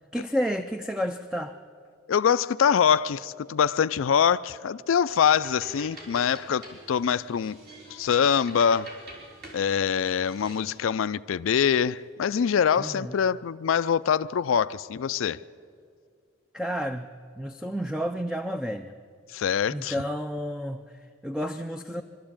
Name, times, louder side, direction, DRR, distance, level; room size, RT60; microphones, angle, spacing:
voice 1, 0.1-1.6 12.8-13.1 16.5-17.1 17.4-18.9 19.7-22.0, equal, 5° right, 0.4 m, -31 dB
voice 2, 2.1-7.6 7.9-8.9 9.5-15.4 19.3-19.9, left 7 dB, 85° left, 0.4 m, -24 dB
sound 1, 5.1-10.8, right 1 dB, 50° right, 4.6 m, -46 dB
23.5 x 12.5 x 8.7 m
head